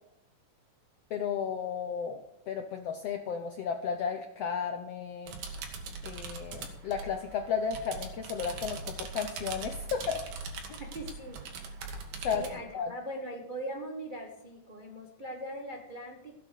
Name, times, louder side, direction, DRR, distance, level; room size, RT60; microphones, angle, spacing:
voice 1, 1.1-5.3 6.0-10.2 10.7-10.8 12.2-12.5 12.7-12.9, left 7 dB, 75° left, 6 dB, 1.4 m, -34 dB
sound 1, 5.3-12.6, right 4 dB, 85° right, 3.5 m, -41 dB
voice 2, 10.7-11.4 12.3-16.4, right 1 dB, 55° right, 1 dB, 0.5 m, -41 dB
16.0 x 8.4 x 6.5 m, 0.85 s
omnidirectional pair, 3.9 m